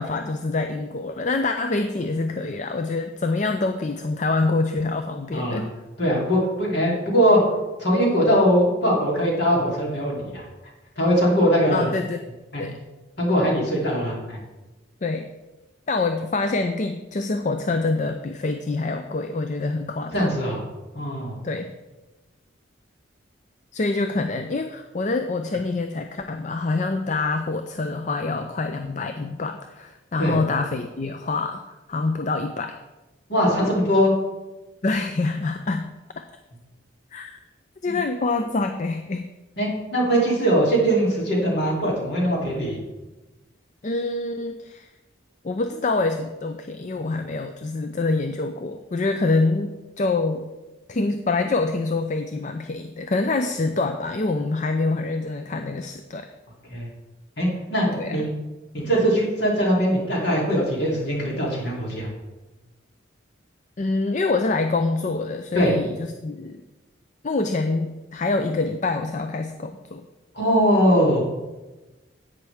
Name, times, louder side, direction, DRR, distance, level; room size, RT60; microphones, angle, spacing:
voice 1, 0.0-5.7 11.7-12.2 12.6-12.8 15.0-15.3 15.9-20.3 21.4-21.7 23.7-31.6 31.9-32.7 34.8-35.9 37.1-37.4 37.8-39.3 43.8-44.9 45.4-50.5 50.9-56.3 57.9-58.2 63.8-66.6 67.2-70.0, left 3 dB, 40° left, 7 dB, 0.4 m, -26 dB
voice 2, 6.0-7.4 7.8-10.4 11.0-11.9 12.5-12.6 13.2-14.4 20.1-20.6 20.9-21.3 30.2-30.4 33.3-34.1 37.9-38.0 39.6-42.8 56.7-56.9 57.4-58.3 58.7-62.1 65.5-65.7 70.3-71.2, equal, 60° left, -3 dB, 3.2 m, -21 dB
11.0 x 8.7 x 3.5 m, 1.1 s
head